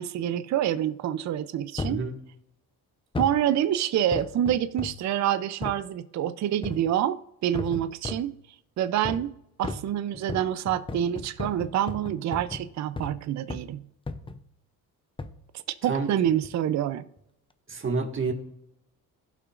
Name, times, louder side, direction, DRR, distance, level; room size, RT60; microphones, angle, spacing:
voice 1, 0.0-2.0 3.2-8.3 8.8-9.3 9.6-13.8 15.8-17.0, right 11 dB, 50° right, 0.5 m, -27 dB
sound 1, 1.8-2.1 3.1-3.5 4.1-5.1 5.6-5.8 6.6-7.0 7.5-8.3 9.0-9.3 9.6-13.2 13.5-13.7 14.1-14.5 15.2-15.4 16.3-16.6 17.2-17.3, left 3 dB, 15° left, 0.6 m, -36 dB
voice 2, 17.7-18.3, right 4 dB, 35° right, 1.7 m, -28 dB
16.5 x 5.8 x 2.5 m
cardioid pair, 90°, 37 cm